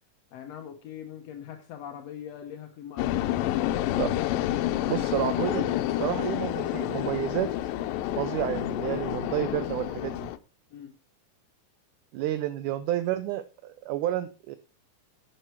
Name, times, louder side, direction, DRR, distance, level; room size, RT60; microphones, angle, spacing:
voice 1, 0.3-3.9 4.7-5.2 10.7-11.0, left 9 dB, 70° left, 5 dB, 1.6 m, -42 dB
sound 1, 3.0-10.4, left 13 dB, 85° left, 2.3 m, -29 dB
voice 2, 4.9-7.5 8.2-10.3 12.1-14.6, right 13 dB, 75° right, 12 dB, 2.0 m, -30 dB
11.5 x 7.4 x 4.5 m, 0.34 s
omnidirectional pair, 4.0 m